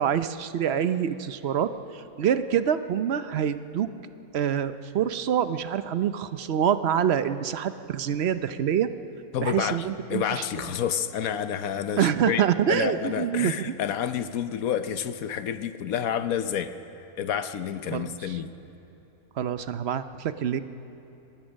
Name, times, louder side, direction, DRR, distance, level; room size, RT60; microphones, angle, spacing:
voice 1, 0.0-3.9 4.3-8.9 9.4-10.4 12.0-13.7 17.9-18.4 19.4-20.6, right 9 dB, 55° right, 11 dB, 0.8 m, -26 dB
voice 2, 9.3-9.8 10.1-12.4 12.7-16.8 17.2-18.5, left 9 dB, 70° left, 11 dB, 1.2 m, -29 dB
24.0 x 19.5 x 6.4 m, 2.9 s
omnidirectional pair, 1.6 m